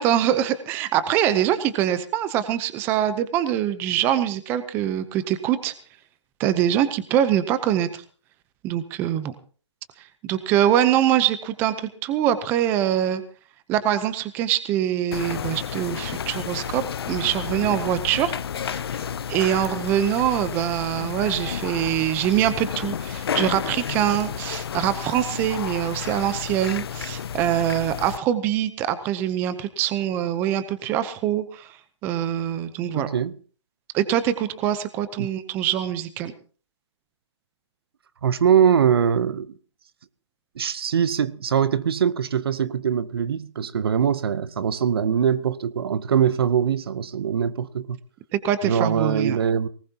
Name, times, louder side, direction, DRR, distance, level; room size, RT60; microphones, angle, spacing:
voice 1, 0.0-5.7 6.4-8.0 8.6-9.3 10.2-13.2 13.7-18.8 19.3-31.7 32.0-33.1 33.9-36.3 48.3-49.4, right 11 dB, 15° right, 0.8 m, -24 dB
sound 1, 15.1-28.2, left 8 dB, 55° left, 0.6 m, -31 dB
voice 2, 32.9-33.3 35.2-35.3 38.2-39.5 40.6-48.0 48.6-49.7, right 8 dB, 55° right, 0.9 m, -22 dB
19.5 x 18.0 x 2.9 m
hypercardioid pair, 160°, 15 cm